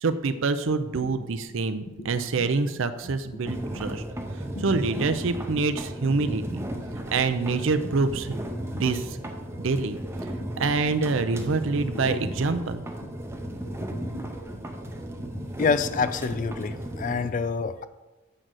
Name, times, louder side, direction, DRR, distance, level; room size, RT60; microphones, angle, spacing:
voice 1, 0.0-4.0 4.6-6.7 7.1-8.5 8.7-9.2 9.6-10.0 10.5-12.8, right 4 dB, 60° right, 10 dB, 0.5 m, -26 dB
sound 1, 0.9-15.7, left 1 dB, 80° left, 1.1 m, -46 dB
sound 2, 3.5-17.3, right 1 dB, 10° right, 0.6 m, -35 dB
voice 2, 15.6-17.9, left 5 dB, 35° left, 13 dB, 0.3 m, -26 dB
7.5 x 3.9 x 6.2 m, 1.1 s
head